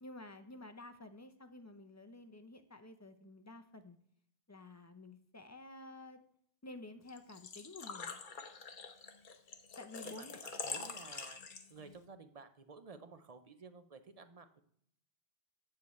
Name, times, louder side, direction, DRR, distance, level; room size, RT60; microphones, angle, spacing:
voice 1, 0.0-4.0 4.5-6.2 6.6-8.2 9.8-10.4, left 2 dB, 20° left, 9 dB, 0.4 m, -51 dB
Engine / Trickle dribble / Fill (with liquid), 7.1-11.9, left 5 dB, 55° left, 0.9 m, -45 dB
voice 2, 10.0-11.4 11.7-14.6, right 4 dB, 45° right, 9 dB, 0.6 m, -54 dB
8.3 x 7.4 x 3.0 m, 0.66 s
omnidirectional pair, 1.1 m